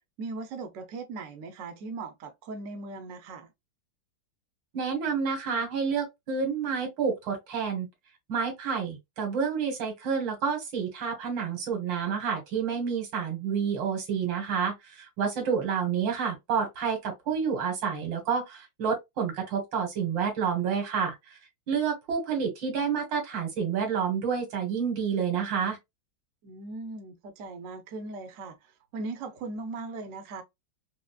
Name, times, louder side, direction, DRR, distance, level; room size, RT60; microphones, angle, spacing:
voice 1, 0.2-3.5 26.4-30.4, right 3 dB, 60° right, 0.9 m, -39 dB
voice 2, 4.7-7.9 8.3-21.2 21.7-25.8, right 6 dB, 85° right, 2.1 m, -29 dB
4.8 x 2.0 x 2.3 m
omnidirectional pair, 2.0 m